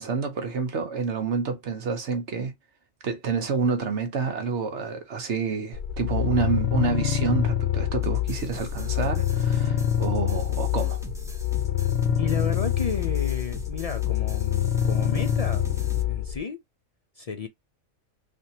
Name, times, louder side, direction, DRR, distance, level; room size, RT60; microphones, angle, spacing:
voice 1, 0.0-2.5 3.0-11.0, right 5 dB, 60° right, 1.2 m, -28 dB
sound 1, 5.7-16.4, left 10 dB, 55° left, 0.7 m, -26 dB
sound 2, 8.0-16.0, right 1 dB, 5° right, 0.7 m, -43 dB
voice 2, 12.2-15.6 16.1-16.6 17.2-17.5, left 5 dB, 75° left, 0.3 m, -33 dB
3.4 x 2.8 x 2.7 m
omnidirectional pair, 1.3 m